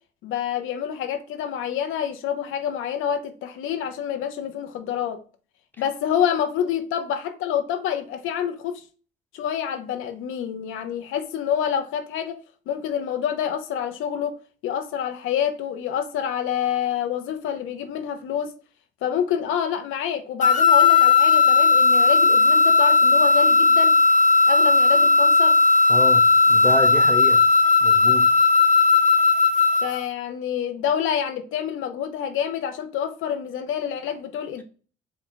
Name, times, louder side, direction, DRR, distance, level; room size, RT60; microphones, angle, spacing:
voice 1, 0.2-5.2 5.8-8.8 9.3-12.4 12.7-14.3 14.6-18.5 19.0-24.0 24.5-25.6 29.8-34.6, left 9 dB, 90° left, 0.6 m, -27 dB
sound 1, 20.4-30.0, left 4 dB, 40° left, 0.8 m, -16 dB
voice 2, 25.9-27.4 27.8-28.2, left 2 dB, 10° left, 0.9 m, -28 dB
4.4 x 2.2 x 3.8 m
cardioid pair, 90°, 20 cm